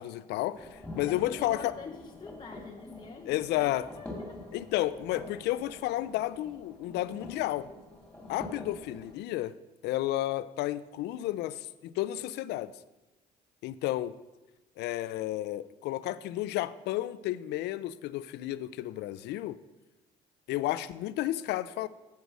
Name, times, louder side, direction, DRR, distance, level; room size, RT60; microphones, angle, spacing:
voice 1, 0.0-1.7 3.3-3.9 4.5-7.7 8.3-9.5 9.8-12.7 13.6-14.1 14.8-19.6 20.5-21.9, left 15 dB, 80° left, 15 dB, 0.5 m, -32 dB
sound 1, 0.5-9.1, left 1 dB, 5° left, 2.4 m, -46 dB
voice 2, 1.1-4.4, left 4 dB, 25° left, 2 dB, 0.7 m, -46 dB
8.2 x 7.8 x 6.1 m, 1.0 s
cardioid pair, 110°, 17 cm